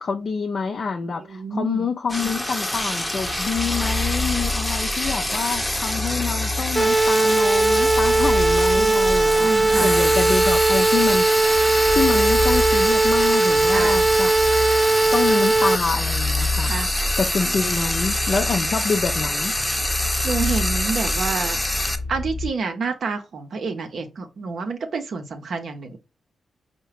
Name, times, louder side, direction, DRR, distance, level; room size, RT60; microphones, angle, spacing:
voice 1, 0.0-11.6 11.9-14.3 15.1-16.7 17.2-19.5, left 5 dB, 55° left, 0.4 m, -26 dB
voice 2, 1.3-1.9 8.8-9.9 13.6-14.0 16.6-17.2 19.9-21.6 22.1-26.0, right 4 dB, 65° right, 0.6 m, -29 dB
Frying (food), 2.1-22.0, left 1 dB, 5° left, 0.8 m, -26 dB
sound 1, 3.1-22.5, left 2 dB, 35° left, 0.9 m, -30 dB
sound 2, 6.8-15.8, right 3 dB, 20° right, 0.3 m, -19 dB
4.6 x 2.1 x 3.1 m
supercardioid pair, 45°, 0 cm